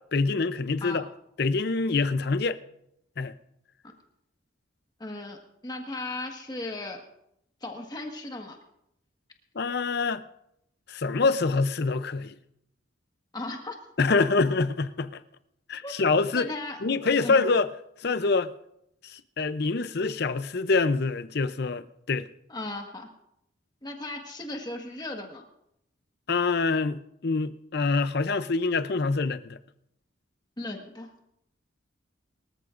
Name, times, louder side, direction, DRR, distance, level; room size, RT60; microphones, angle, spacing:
voice 1, 0.1-1.1 1.4-2.6 3.2-3.3 9.5-10.2 10.9-12.3 14.0-15.2 15.7-16.5 16.8-17.7 18.0-18.5 19.0-22.3 26.3-29.6, left 4 dB, 50° left, 0.6 m, -25 dB
voice 2, 5.0-7.0 7.6-8.6 13.3-13.8 15.8-15.9 16.3-16.8 17.2-17.4 22.5-23.1 23.8-25.4 30.6-31.1, left 2 dB, 20° left, 1.5 m, -36 dB
23.5 x 14.0 x 2.5 m
head